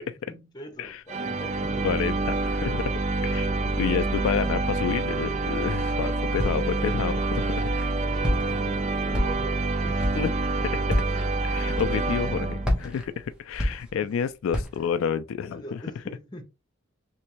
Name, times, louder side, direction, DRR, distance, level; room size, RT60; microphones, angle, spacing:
voice 1, 0.3-2.3 6.0-10.2 10.6-11.0 14.0-14.2 14.8-14.9 15.5-16.4, equal, 20° left, 0.9 m, -44 dB
sound 1, 1.1-13.0, right 2 dB, 35° right, 0.4 m, -27 dB
voice 2, 1.8-2.9 3.2-3.5 3.8-7.7 10.2-10.6 11.4-15.8, left 7 dB, 85° left, 0.3 m, -29 dB
Walk footsteps, 6.4-6.8 7.3-7.9 8.2-8.7 9.1-9.6 10.0-10.3 10.8-11.2 11.7-12.3 12.6-14.2 14.5-14.9, equal, 5° right, 0.7 m, -29 dB
3.3 x 3.1 x 3.0 m
head